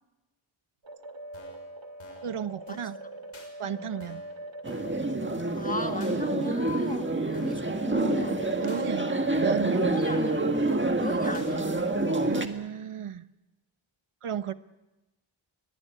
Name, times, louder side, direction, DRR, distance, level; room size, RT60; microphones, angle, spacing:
sound 1, 0.8-12.3, right 1 dB, 65° right, 2.6 m, -42 dB
sound 2, 1.3-1.7 2.0-2.3 2.7-2.8 3.3-3.5 4.0-4.3 4.7-5.0 5.3-5.4 6.0-6.2 6.7-7.0 7.3-7.7 8.0-8.1 8.7-8.8 9.3-9.7 10.0-10.3 10.7-10.8 11.3-11.5, left 3 dB, 75° left, 6.1 m, -51 dB
voice 1, 2.2-3.0 3.6-4.2 8.6-9.8 12.2-13.3 14.2-14.5, right 9 dB, 90° right, 12 dB, 1.0 m, -34 dB
sound 3, 4.6-12.5, right 2 dB, 25° right, 1.7 m, -27 dB
voice 2, 5.5-8.6 9.7-10.5 11.0-11.8, left 2 dB, 15° left, 6 dB, 1.7 m, -36 dB
23.0 x 20.5 x 9.5 m, 1.0 s
wide cardioid pair, 100°, 49 cm